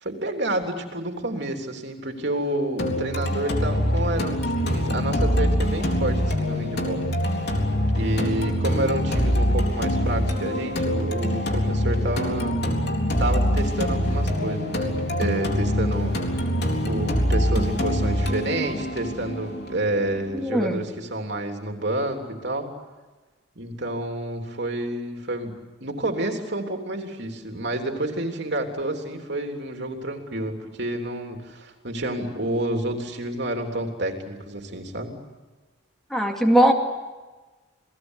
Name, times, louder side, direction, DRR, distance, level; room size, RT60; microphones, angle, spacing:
voice 1, 0.0-7.0 7.9-12.6 13.2-14.9 15.2-16.5 16.8-22.7 23.5-25.5 25.8-35.1, right 1 dB, 55° right, 3 dB, 3.4 m, -29 dB
sound 1, 2.8-20.8, equal, 55° left, 3.9 m, -24 dB
voice 2, 20.4-20.8 36.1-36.7, equal, ahead, 1 dB, 2.3 m, -19 dB
29.0 x 19.5 x 8.2 m, 1.2 s
head